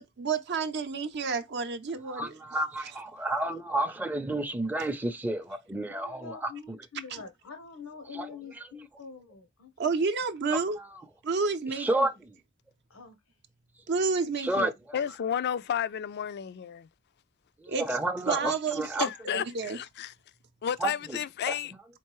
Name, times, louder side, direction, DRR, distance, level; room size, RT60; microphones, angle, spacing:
voice 1, 0.0-2.3 7.1-7.2 9.8-10.8 11.2-12.1 13.9-14.7 17.7-17.9 18.3-19.1 19.3-19.8, right 4 dB, 55° right, 0.6 m, -30 dB
voice 2, 2.1-6.5 8.1-8.6 10.5-11.0 11.7-12.4 14.4-15.0 17.6-19.1 20.8-21.2 21.5-21.6, right 1 dB, 10° right, 0.5 m, -31 dB
voice 3, 5.9-9.7 12.9-13.2, left 5 dB, 85° left, 0.9 m, -45 dB
voice 4, 14.9-16.9 19.0-20.1 20.6-21.7, left 8 dB, 50° left, 0.4 m, -32 dB
4.5 x 3.7 x 3.0 m
head